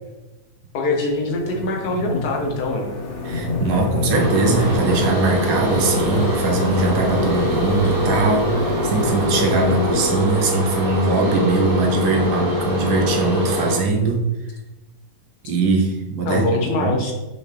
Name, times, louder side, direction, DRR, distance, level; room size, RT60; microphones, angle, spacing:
voice 1, 0.7-2.9 16.3-17.1, left 2 dB, 75° left, 2 dB, 1.5 m, -23 dB
sound 1, 1.1-10.3, left 2 dB, 50° left, 1.3 m, -27 dB
voice 2, 3.2-14.2 15.4-16.4 16.8-17.1, right 3 dB, 80° right, 2 dB, 1.5 m, -21 dB
sound 2, 4.1-13.8, equal, 35° right, 1.3 m, -24 dB
Bass guitar, 4.7-11.0, right 9 dB, ahead, 1.4 m, -37 dB
5.6 x 4.9 x 3.4 m, 1.1 s
omnidirectional pair, 1.7 m